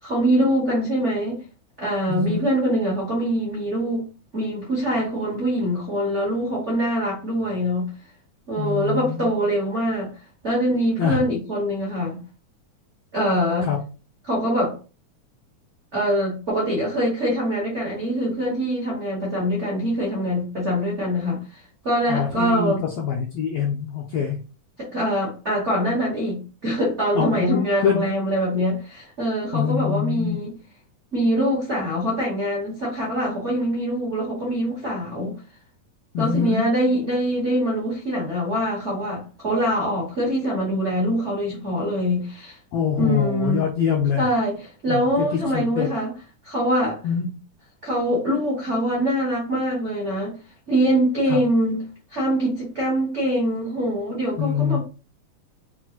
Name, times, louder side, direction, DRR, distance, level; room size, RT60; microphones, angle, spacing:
voice 1, 0.0-1.4 1.8-4.1 4.3-7.9 8.5-10.1 10.4-12.2 13.1-13.7 14.2-14.8 15.9-22.8 24.8-30.5 31.1-35.4 36.2-42.6 42.9-43.6 44.2-46.1 46.4-47.0 47.8-50.3 50.7-51.8 52.1-54.8, equal, 80° right, 0.6 m, -24 dB
voice 2, 2.1-2.5 8.6-9.4 11.0-11.2 13.7-13.8 22.1-24.4 27.2-28.0 29.5-30.4 36.1-36.7 42.7-44.3 44.9-45.3 45.5-45.9 47.0-47.3 51.3-51.4 54.4-54.8, left 7 dB, 90° left, 1.4 m, -24 dB
5.9 x 2.4 x 2.9 m
omnidirectional pair, 3.6 m